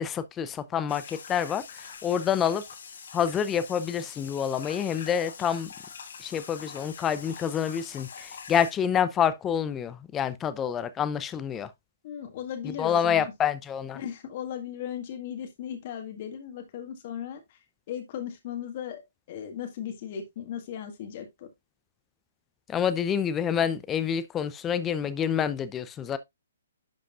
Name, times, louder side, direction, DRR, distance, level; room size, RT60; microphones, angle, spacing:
voice 1, 0.0-2.6 3.1-5.7 6.2-11.7 12.8-14.0 22.7-26.2, left 8 dB, 20° left, 0.6 m, -27 dB
sound 1, 0.9-8.7, left 6 dB, 65° left, 1.9 m, -44 dB
voice 2, 12.0-13.3 13.9-17.6 17.9-19.0 19.3-21.5, left 9 dB, 45° left, 1.8 m, -37 dB
11.0 x 5.1 x 2.4 m
hypercardioid pair, 135°, 0 cm